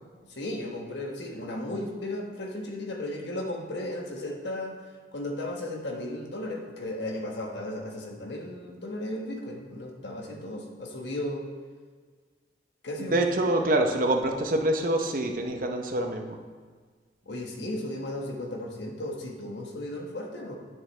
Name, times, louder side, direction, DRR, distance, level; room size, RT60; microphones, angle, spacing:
voice 1, 0.3-4.8 5.1-11.4 12.8-13.7 17.3-20.6, left 1 dB, 80° left, 1 dB, 1.3 m, -35 dB
voice 2, 13.0-16.4, right 1 dB, 50° right, 4 dB, 0.7 m, -26 dB
9.8 x 7.3 x 3.3 m, 1.5 s
head